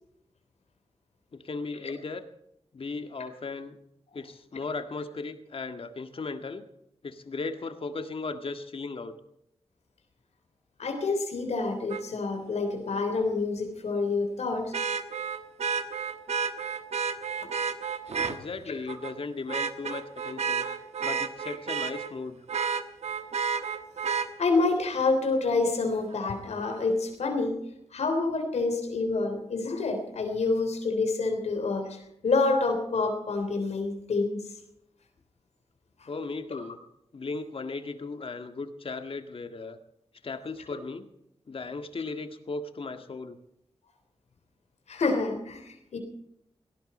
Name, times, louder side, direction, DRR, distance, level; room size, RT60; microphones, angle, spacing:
voice 1, 1.3-2.2 2.7-3.8 4.1-6.6 7.0-9.1 18.3-20.7 21.0-22.4 36.1-36.8 37.1-39.8 40.2-41.1 41.5-43.4, left 3 dB, 55° left, 8 dB, 1.8 m, -36 dB
voice 2, 10.8-14.7 18.7-18.8 24.4-27.6 27.9-34.4 36.5-36.6 44.9-46.0, left 3 dB, 90° left, 5 dB, 3.5 m, -27 dB
Vehicle horn car horn honking, 11.9-12.0 14.7-18.4 18.9-19.1 19.5-22.1 22.5-24.3 26.1-26.2, right 6 dB, 80° right, 1.2 m, -31 dB
18.0 x 18.0 x 4.3 m, 0.78 s
wide cardioid pair, 80°, 11 cm